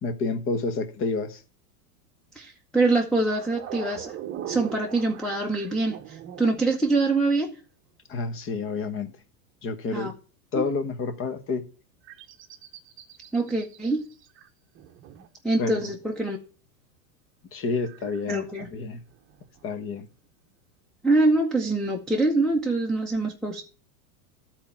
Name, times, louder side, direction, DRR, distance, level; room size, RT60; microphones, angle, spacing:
voice 1, 0.0-1.4 8.1-9.2 9.6-10.1 10.5-11.6 15.6-15.9 17.5-19.0 19.6-20.1, left 4 dB, 25° left, 10 dB, 1.1 m, -29 dB
voice 2, 2.3-4.1 4.5-7.5 9.9-10.1 10.5-10.6 13.3-14.1 15.4-16.4 18.3-18.7 21.0-23.6, right 2 dB, ahead, 3 dB, 0.8 m, -24 dB
sound 1, 3.2-7.3 11.3-11.7 12.0-14.5 14.7-15.3 17.8-19.7 20.0-20.1, right 10 dB, 25° right, 0.9 m, -42 dB
11.5 x 4.4 x 7.1 m, 0.35 s
supercardioid pair, 135°, 47 cm